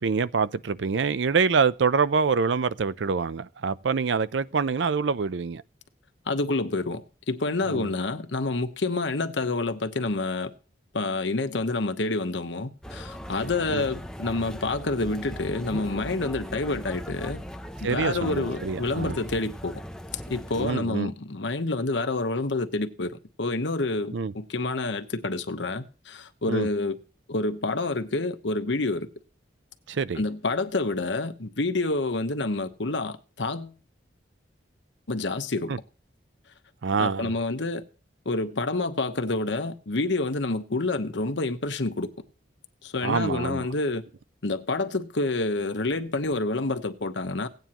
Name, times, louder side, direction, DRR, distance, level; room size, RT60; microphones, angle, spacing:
voice 1, 0.0-5.6 7.7-7.9 13.7-13.8 17.8-19.2 20.6-21.1 24.1-24.3 26.5-26.7 29.9-30.2 35.7-35.8 36.8-37.3 43.0-43.7, right 5 dB, 75° right, 0.5 m, -25 dB
voice 2, 6.3-10.5 10.9-17.4 17.8-19.8 20.3-27.0 27.3-29.1 30.1-33.7 35.1-35.7 37.0-37.8 38.2-42.1 42.8-44.0 44.4-47.5, left 2 dB, 75° left, 1.0 m, -28 dB
sound 1, 12.8-20.7, equal, 5° left, 0.6 m, -39 dB
17.0 x 9.2 x 3.0 m
head